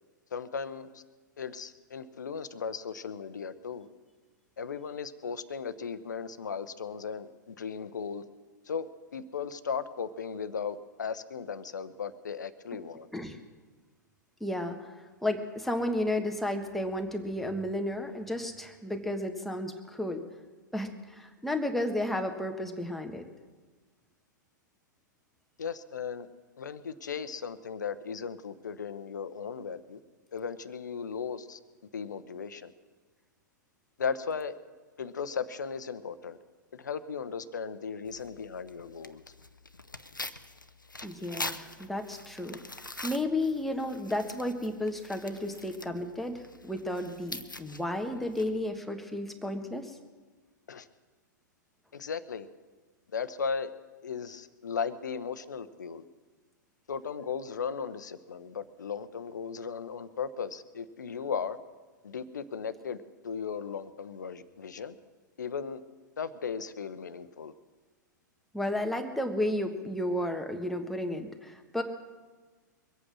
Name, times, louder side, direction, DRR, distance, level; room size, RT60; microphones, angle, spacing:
voice 1, 0.3-1.0 1.4-3.9 4.6-8.2 8.7-8.9 9.1-13.1 25.6-26.3 26.6-30.0 30.3-31.6 31.9-32.7 34.0-34.6 35.0-36.4 36.7-39.2 50.7-50.9 51.9-52.5 53.1-53.7 54.0-56.0 56.9-61.6 62.0-63.0 63.2-65.0 65.4-65.8 66.2-67.5, left 6 dB, 65° left, 13 dB, 0.9 m, -36 dB
voice 2, 14.4-14.9 15.2-20.2 20.7-23.2 41.0-50.0 68.5-71.8, left 1 dB, ahead, 4 dB, 1.3 m, -33 dB
Tearing, 38.0-48.8, left 2 dB, 90° left, 0.7 m, -44 dB
23.0 x 8.6 x 6.3 m, 1.3 s
figure-of-eight pair, 105°, 10 cm